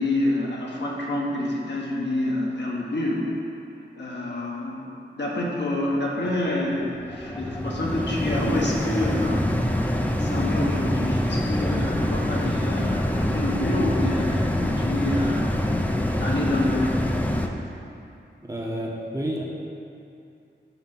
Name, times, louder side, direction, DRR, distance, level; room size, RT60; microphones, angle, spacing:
voice 1, 0.0-3.3 4.0-4.9 5.1-9.5 10.2-15.5 16.2-17.0, left 1 dB, 65° left, -4 dB, 1.2 m, -27 dB
sound 1, 6.2-17.5, left 1 dB, 10° left, 0.5 m, -25 dB
voice 2, 18.4-19.4, right 1 dB, 20° right, -3 dB, 0.9 m, -30 dB
5.7 x 4.4 x 6.0 m, 2.6 s
wide cardioid pair, 85°, 19 cm